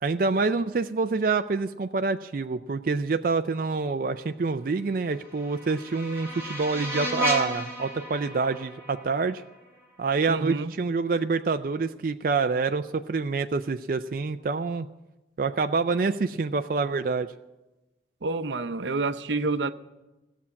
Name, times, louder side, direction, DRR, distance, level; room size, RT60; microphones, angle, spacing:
voice 1, 0.0-9.4 10.0-14.9 15.4-17.3, right 4 dB, 50° right, 8 dB, 0.4 m, -27 dB
sound 1, 4.9-10.0, equal, 15° right, 3.1 m, -33 dB
voice 2, 10.3-10.7 18.2-19.7, right 3 dB, 85° right, 11 dB, 0.7 m, -28 dB
16.0 x 7.1 x 9.6 m, 1.1 s
head